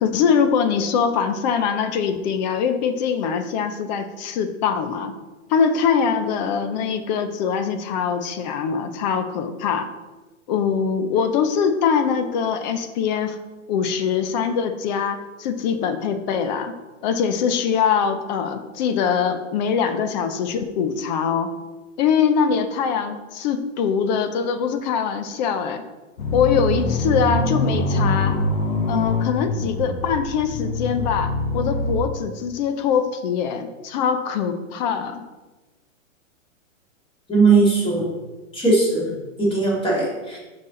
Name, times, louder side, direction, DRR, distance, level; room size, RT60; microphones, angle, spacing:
voice 1, 0.0-5.1 5.5-9.9 10.5-13.4 13.7-16.7 17.0-21.5 22.0-25.8 26.3-28.4 28.9-35.2, left 7 dB, 35° left, 9 dB, 0.6 m, -23 dB
sound 1, 26.2-32.0, left 2 dB, 80° left, 1.4 m, -24 dB
voice 2, 37.3-38.1 38.5-39.1 39.4-40.4, right 3 dB, 15° left, -4 dB, 2.2 m, -18 dB
6.1 x 5.8 x 3.8 m, 1.2 s
hypercardioid pair, 135°, 40 cm